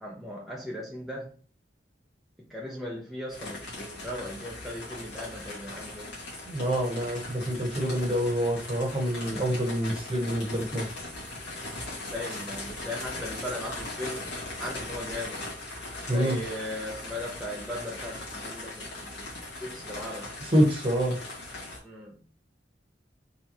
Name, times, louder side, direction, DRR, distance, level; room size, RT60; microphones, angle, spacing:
voice 1, 0.0-1.4 2.4-6.2 12.1-15.4 16.0-19.3 19.6-20.3 21.8-22.2, left 1 dB, ahead, -4 dB, 0.6 m, -38 dB
sound 1, 3.3-21.8, left 2 dB, 80° left, 1.9 m, -39 dB
voice 2, 6.4-10.9 16.1-16.4 20.5-21.2, equal, 30° right, 1 dB, 1.1 m, -26 dB
4.1 x 3.4 x 3.0 m, 0.38 s
head